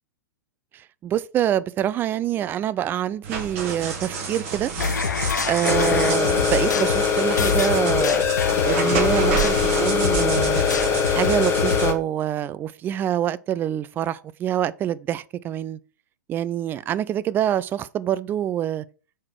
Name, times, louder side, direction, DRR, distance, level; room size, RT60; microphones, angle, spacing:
voice 1, 1.0-4.7 5.5-8.2 8.6-10.6 11.1-15.8 16.3-18.8, right 11 dB, 20° right, 0.4 m, -25 dB
sound 1, 3.2-11.9, right 5 dB, 45° right, 1.8 m, -29 dB
sound 2, 4.8-11.9, left 6 dB, 70° left, 0.7 m, -27 dB
sound 3, 5.6-11.9, left 7 dB, 25° left, 1.2 m, -22 dB
6.4 x 3.8 x 6.1 m
figure-of-eight pair, 105°, 10 cm